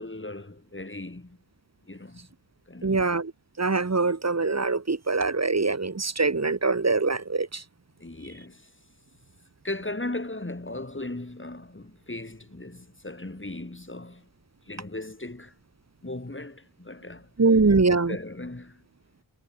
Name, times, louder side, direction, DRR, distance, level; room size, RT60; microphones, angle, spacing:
voice 1, 0.0-1.4 1.9-2.3 2.7-3.1 8.0-8.7 9.6-14.3 14.7-15.5 16.0-17.3 18.1-18.8, left 2 dB, 25° left, 5.3 m, -37 dB
voice 2, 2.8-3.3 3.6-7.6 17.4-18.2, right 3 dB, 30° right, 1.4 m, -23 dB
wide cardioid pair, 65°, 49 cm